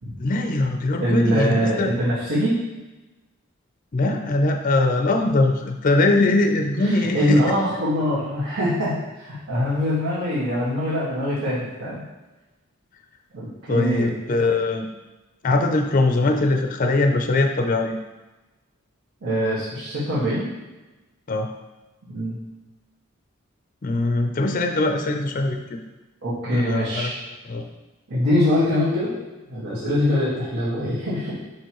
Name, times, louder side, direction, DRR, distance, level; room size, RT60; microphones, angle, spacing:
voice 1, 0.2-1.9 3.9-7.5 13.7-14.9 15.4-18.0 21.3-21.5 23.8-25.8 26.5-27.1 27.4-27.7, left 2 dB, 40° left, 4 dB, 0.5 m, -21 dB
voice 2, 1.0-2.6 7.1-12.0 13.3-14.1 19.2-20.4 22.1-22.4 26.2-27.1 28.1-29.1 29.5-31.4, equal, 70° right, -12 dB, 1.8 m, -23 dB
6.9 x 5.0 x 3.1 m, 1.1 s
head